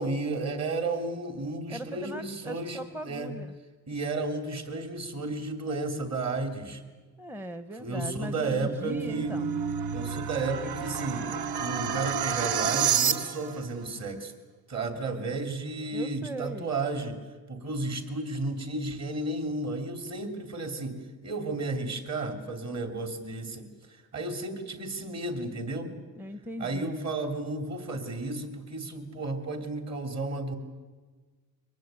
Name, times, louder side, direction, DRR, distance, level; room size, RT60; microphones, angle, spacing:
voice 1, 0.0-3.3 3.9-6.8 7.8-9.4 9.9-11.3 11.6-14.3 14.7-17.2 17.5-21.0 21.2-25.9 26.6-30.6, right 2 dB, 45° right, 7 dB, 3.6 m, -33 dB
voice 2, 1.7-3.5 7.2-9.5 15.9-16.7 26.2-26.9, right 1 dB, 5° right, 11 dB, 0.8 m, -39 dB
sound 1, 8.7-13.6, right 7 dB, 85° right, 1.2 m, -29 dB
23.5 x 19.5 x 9.3 m, 1.4 s
cardioid pair, 115°, 37 cm